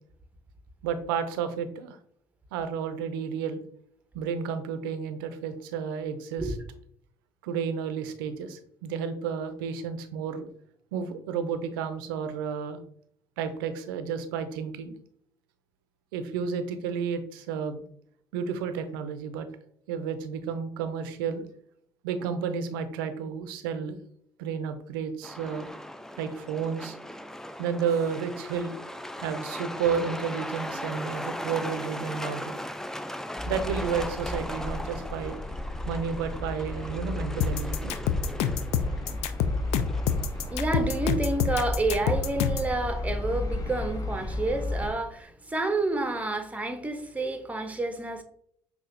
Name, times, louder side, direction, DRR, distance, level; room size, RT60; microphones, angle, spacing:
voice 1, 0.8-2.0 2.5-3.6 4.1-6.5 7.4-10.5 10.9-12.8 13.4-15.0 16.1-17.8 18.3-19.5 19.9-21.4 22.0-24.0 24.4-25.7 26.2-27.0 27.6-28.8 29.2-32.6 33.5-35.4 35.9-37.9, right 6 dB, 85° right, 0.4 m, -31 dB
Truck, 25.2-41.1, left 1 dB, 5° left, 0.4 m, -38 dB
sound 1, 33.4-44.9, left 2 dB, 30° left, 0.7 m, -34 dB
sound 2, 37.4-42.7, left 8 dB, 70° left, 0.4 m, -27 dB
voice 2, 40.5-48.2, right 2 dB, 10° right, 0.8 m, -29 dB
5.6 x 2.3 x 2.6 m
hypercardioid pair, 55°, 11 cm